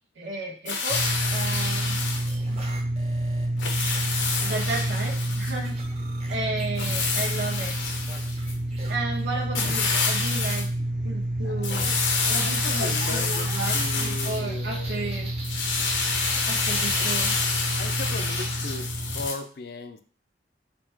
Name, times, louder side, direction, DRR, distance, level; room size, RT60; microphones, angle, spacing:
voice 1, 0.1-1.0 1.3-2.0 4.4-5.8 6.3-7.7 8.9-10.7 11.0-12.0 12.3-15.3 16.4-17.3, right 2 dB, 70° right, -3 dB, 1.2 m, -33 dB
sound 1, 0.7-2.3 3.6-5.6 6.8-8.5 9.5-10.7 11.6-14.4 15.4-19.3, left 4 dB, 85° left, 0.8 m, -28 dB
sound 2, 0.9-19.3, right 1 dB, 5° right, 0.4 m, -29 dB
sound 3, 2.0-3.5 3.9-4.8 5.2-6.9 7.9-10.1 12.7-17.8, right 2 dB, 35° right, 0.8 m, -43 dB
voice 2, 11.4-15.1 17.0-17.1 17.8-20.0, left 3 dB, 55° left, 9 dB, 0.4 m, -38 dB
4.2 x 2.3 x 4.4 m, 0.41 s
head